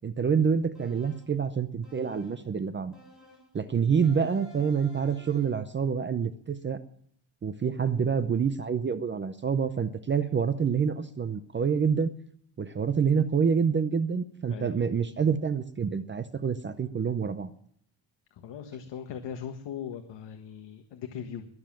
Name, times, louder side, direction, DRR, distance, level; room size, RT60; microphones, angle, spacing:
voice 1, 0.0-2.9 3.5-6.8 7.4-12.1 12.6-17.5, right 6 dB, 25° right, 11 dB, 0.6 m, -27 dB
sound 1, 0.7-1.4 1.8-2.5 2.9-3.6 4.0-5.7, left 2 dB, ahead, 3.9 m, -53 dB
voice 2, 18.3-21.5, left 8 dB, 60° left, 6 dB, 1.5 m, -39 dB
22.0 x 7.4 x 7.4 m, 0.65 s
cardioid pair, 180°, 48 cm